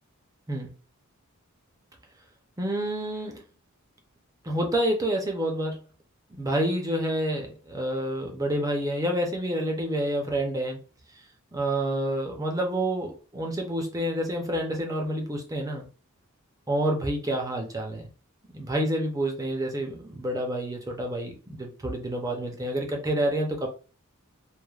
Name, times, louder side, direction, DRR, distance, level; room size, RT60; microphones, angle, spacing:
voice 1, 2.6-3.4 4.4-5.8 6.3-10.8 11.5-15.9 16.7-18.1 18.5-23.7, right 1 dB, 15° right, 2 dB, 0.5 m, -28 dB
3.2 x 2.1 x 2.3 m, 0.35 s
head